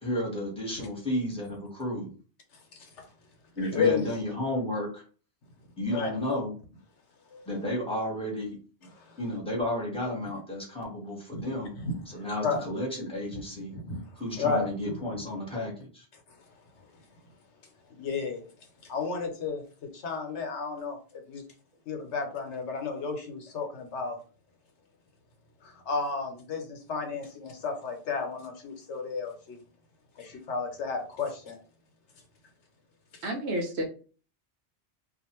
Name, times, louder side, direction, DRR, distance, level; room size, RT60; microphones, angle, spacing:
voice 1, 0.0-2.1 3.5-5.0 5.8-6.6 7.5-8.6 9.2-11.7 12.1-13.7 14.1-16.0, left 1 dB, 5° left, -3 dB, 1.0 m, -32 dB
voice 2, 3.7-4.1 5.9-6.1 11.3-11.4 11.8-11.9 12.4-12.6 13.7-14.0 14.4-15.0 18.0-18.4 18.9-19.6 20.0-21.0 21.3-21.4 21.9-24.1 25.9-29.6 30.2-31.6, left 4 dB, 85° left, 4 dB, 1.1 m, -32 dB
voice 3, 33.2-33.8, right 1 dB, 75° right, 2 dB, 0.9 m, -30 dB
2.5 x 2.4 x 2.9 m, 0.39 s
omnidirectional pair, 1.2 m